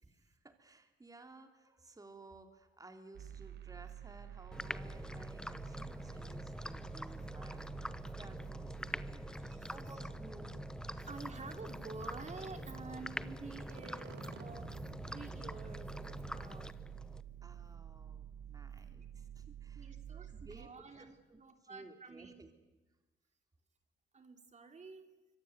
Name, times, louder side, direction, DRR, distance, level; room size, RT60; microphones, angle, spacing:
voice 1, 0.0-10.6 10.9-11.1 17.4-20.7 21.3-21.4 21.7-22.5, right 2 dB, 20° right, 6 dB, 3.1 m, -57 dB
sound 1, 3.1-20.7, right 9 dB, 60° right, 1.4 m, -50 dB
sound 2, 4.5-17.2, left 1 dB, 5° left, 1.1 m, -45 dB
voice 2, 6.1-6.6 7.0-7.3 8.1-8.2 8.8-10.1 11.0-14.8 15.1-16.8 18.7-18.9 19.7-22.4 24.1-25.1, right 4 dB, 35° right, 6 dB, 3.1 m, -51 dB
25.0 x 24.0 x 9.5 m, 1.1 s
cardioid pair, 90°, 20 cm